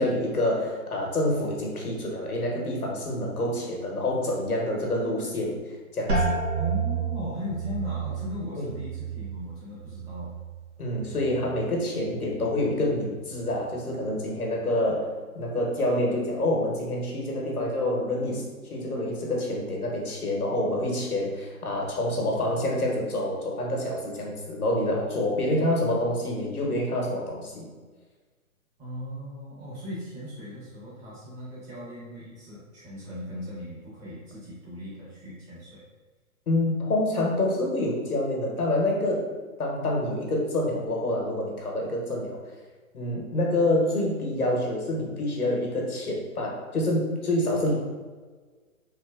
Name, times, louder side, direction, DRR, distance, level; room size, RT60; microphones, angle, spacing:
voice 1, 0.0-6.3 8.6-8.7 10.8-27.7 36.5-39.3 39.6-42.4 42.9-47.7, left 1 dB, 90° left, -1 dB, 1.0 m, -27 dB
sound 1, 6.1-11.7 12.0-12.7 13.3-13.7, right 4 dB, 90° right, 1.2 m, -32 dB
voice 2, 6.5-10.3 28.8-35.8, left 1 dB, 15° right, -8 dB, 1.1 m, -38 dB
3.1 x 2.9 x 2.3 m, 1.4 s
figure-of-eight pair, 135°, 43 cm